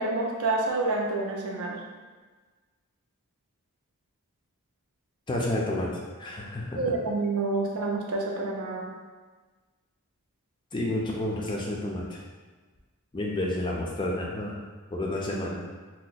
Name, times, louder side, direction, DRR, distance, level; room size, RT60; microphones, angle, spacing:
voice 1, 0.0-1.8 6.7-8.9, right 3 dB, 70° right, -1 dB, 0.6 m, -28 dB
voice 2, 5.3-5.9 6.2-6.8 10.7-12.2 13.1-14.5 14.9-15.6, left 1 dB, 20° left, -2 dB, 0.4 m, -30 dB
2.8 x 2.2 x 3.9 m, 1.4 s
head